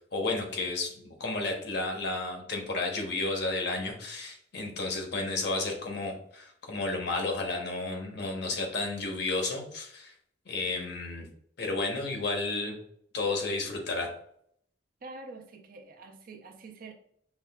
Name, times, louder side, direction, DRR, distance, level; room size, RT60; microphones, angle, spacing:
voice 1, 0.1-10.1 10.5-11.3 11.6-12.8 13.1-14.1, left 3 dB, 65° left, 2 dB, 0.8 m, -32 dB
voice 2, 15.0-16.9, right 3 dB, 50° right, 4 dB, 0.5 m, -46 dB
5.7 x 2.3 x 2.2 m, 0.67 s
head